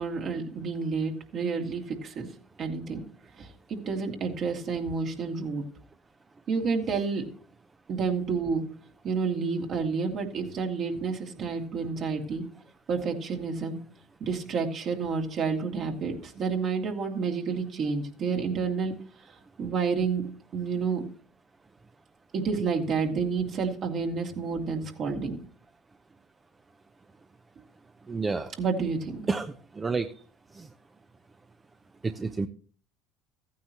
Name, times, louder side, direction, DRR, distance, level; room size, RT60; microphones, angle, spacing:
voice 1, 0.0-2.3 2.6-3.0 3.4-5.6 6.5-7.2 7.9-8.7 9.0-12.4 12.9-13.8 14.2-18.9 19.6-20.3 20.5-21.0 22.3-25.4 28.6-29.2, right 5 dB, 50° right, 1 dB, 2.5 m, -29 dB
voice 2, 28.0-28.5 29.3-30.1 30.5-30.7 32.0-32.5, right 4 dB, 25° right, 8 dB, 0.7 m, -30 dB
15.0 x 9.3 x 3.0 m, 0.41 s
hypercardioid pair, 75°, 0 cm